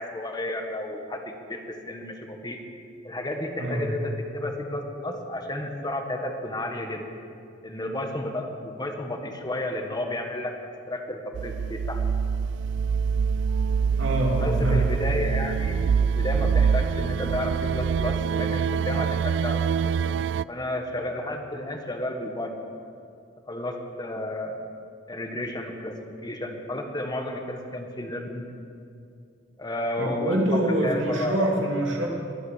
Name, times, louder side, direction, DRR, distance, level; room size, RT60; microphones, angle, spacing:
voice 1, 0.0-2.6 3.0-7.1 7.6-10.5 10.9-12.0 14.4-20.2 20.5-22.5 23.5-24.7 25.1-26.0 26.2-28.4 29.6-31.5, left 1 dB, 20° left, 4 dB, 1.6 m, -32 dB
sound 1, 11.3-20.4, right 6 dB, 70° right, 0.3 m, -25 dB
voice 2, 14.0-14.8 30.0-32.1, right 1 dB, 85° right, -1 dB, 2.9 m, -25 dB
22.5 x 9.4 x 6.7 m, 2.4 s
head